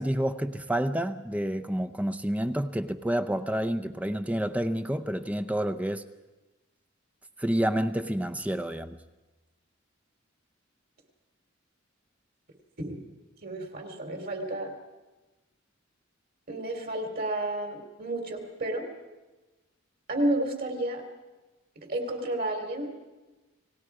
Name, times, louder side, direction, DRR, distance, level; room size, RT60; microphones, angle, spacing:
voice 1, 0.0-6.0 7.4-9.0, right 1 dB, 5° right, 0.6 m, -29 dB
voice 2, 13.4-14.7 16.5-18.9 20.1-21.0 21.7-22.9, right 1 dB, 50° right, 3.3 m, -31 dB
30.0 x 18.5 x 4.9 m
head